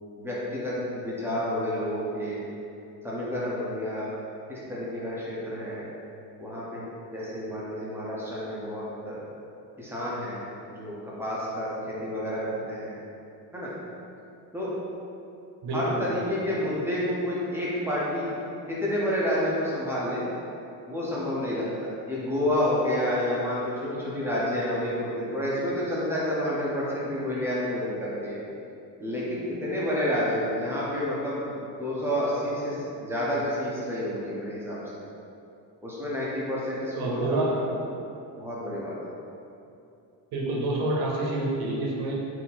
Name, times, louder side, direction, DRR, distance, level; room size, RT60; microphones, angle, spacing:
voice 1, 0.2-2.4 3.0-4.1 4.5-5.9 6.4-6.8 7.1-9.2 9.8-12.9 13.5-13.7 14.5-14.7 15.7-18.4 18.7-20.2 20.9-21.7 22.0-28.4 29.0-34.8 35.8-37.8 38.4-39.0, left 1 dB, 5° right, -7 dB, 0.7 m, -29 dB
voice 2, 15.6-16.1 36.9-37.6 40.3-42.1, right 2 dB, 70° right, -3 dB, 0.9 m, -28 dB
4.1 x 2.7 x 4.1 m, 2.7 s
cardioid pair, 155°, 39 cm